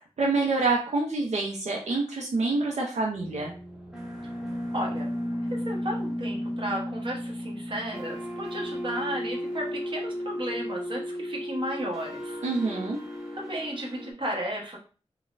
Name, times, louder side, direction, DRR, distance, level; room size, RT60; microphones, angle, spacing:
voice 1, 0.2-3.5 12.4-13.0, right 3 dB, 85° right, 0 dB, 0.5 m, -27 dB
sound 1, 3.1-14.1, equal, 5° right, 0.8 m, -34 dB
voice 2, 4.7-5.2 5.5-12.4 13.4-14.8, right 1 dB, 45° right, -1 dB, 1.0 m, -34 dB
3.9 x 2.1 x 2.4 m, 0.36 s
wide cardioid pair, 105°, 11 cm